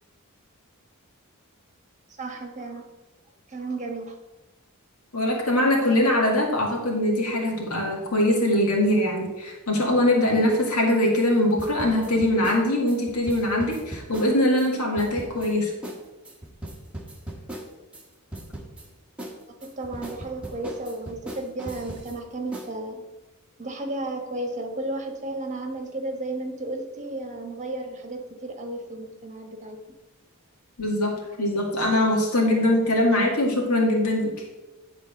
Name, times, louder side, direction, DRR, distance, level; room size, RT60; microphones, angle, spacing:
voice 1, 2.2-2.9 3.5-4.2 19.6-23.0 23.6-29.8, right 2 dB, 35° right, 3 dB, 1.4 m, -33 dB
voice 2, 5.1-15.7 30.8-34.3, left 1 dB, 80° left, 0 dB, 2.0 m, -22 dB
sound 1, 11.6-14.7 15.0-15.5 15.8-16.0 16.2-18.0 18.3-18.9 19.2-22.2 22.5-22.7, right 1 dB, 5° right, 1.4 m, -38 dB
10.0 x 4.1 x 6.6 m, 1.1 s
head